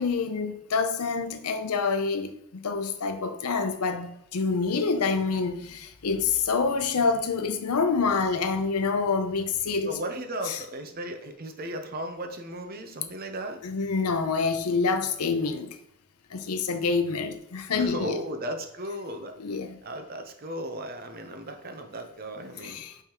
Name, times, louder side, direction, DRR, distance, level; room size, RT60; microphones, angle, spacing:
voice 1, 0.0-10.0 10.5-10.6 13.6-15.8 16.3-18.2 19.4-19.8 22.6-23.0, left 4 dB, 80° left, 0.7 m, -27 dB
voice 2, 9.8-13.6 17.8-19.4 19.8-22.8, right 1 dB, 40° right, 0.7 m, -36 dB
9.0 x 3.5 x 3.0 m
head